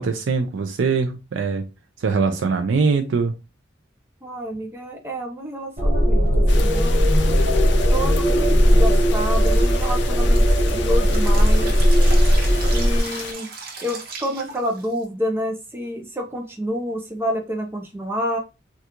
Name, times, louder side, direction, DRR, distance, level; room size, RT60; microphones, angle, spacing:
voice 1, 0.0-1.7 2.0-3.3, right 4 dB, 85° right, 0.4 m, -22 dB
voice 2, 4.2-7.1 7.9-10.4 10.7-11.7 12.7-13.5 13.8-18.4, equal, 10° right, 0.5 m, -28 dB
sound 1, 5.8-13.0, equal, 30° right, 0.9 m, -17 dB
sound 2, 6.5-13.3, left 5 dB, 65° left, 0.5 m, -34 dB
Drip, 9.5-15.0, right 4 dB, 55° right, 0.9 m, -37 dB
3.6 x 2.3 x 2.8 m
head